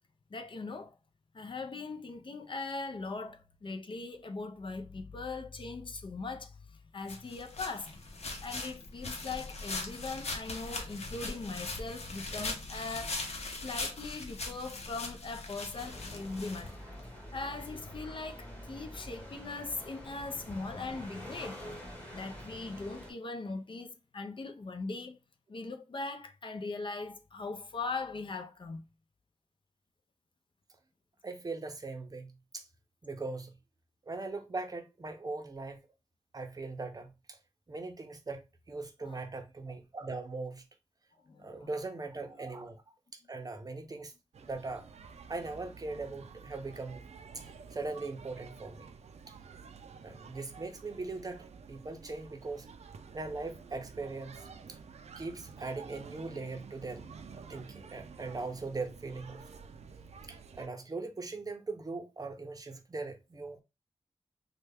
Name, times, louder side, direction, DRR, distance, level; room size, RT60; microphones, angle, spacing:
voice 1, 0.3-0.9 1.3-6.5 6.9-8.1 8.4-13.2 13.6-16.8 17.3-21.6 22.1-25.2 25.5-28.8 39.0-39.2 41.3-41.7, left 3 dB, 50° left, 0.5 m, -40 dB
sound 1, 7.1-17.1, left 3 dB, 75° left, 0.8 m, -40 dB
sound 2, 15.7-23.1, equal, 10° left, 1.5 m, -46 dB
voice 2, 31.2-32.7 33.0-33.5 34.1-35.8 36.3-37.4 37.7-40.6 41.4-42.8 43.1-44.1 44.4-44.9 45.3-47.1 47.3-48.9 49.3-49.4 50.0-52.7 53.1-54.4 54.7-54.8 55.2-57.0 57.3-59.4 60.3-63.6, right 3 dB, 35° right, 0.6 m, -40 dB
sound 3, 44.3-60.7, right 5 dB, 85° right, 0.4 m, -51 dB
3.2 x 2.2 x 3.3 m
wide cardioid pair, 105°, 11 cm